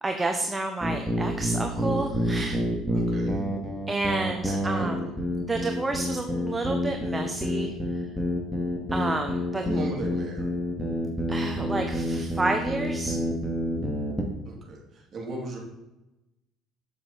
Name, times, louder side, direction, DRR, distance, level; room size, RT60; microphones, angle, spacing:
voice 1, 0.0-2.6 3.9-5.1 5.5-7.7 8.9-9.6 11.3-13.1, right 2 dB, 20° right, 4 dB, 0.9 m, -30 dB
sound 1, 0.8-14.3, equal, ahead, 2.2 m, -28 dB
voice 2, 2.9-3.4 4.5-4.9 9.6-10.5 14.5-15.6, right 2 dB, 40° right, 0 dB, 2.7 m, -36 dB
7.8 x 7.4 x 4.1 m, 0.96 s
hypercardioid pair, 65°, 0 cm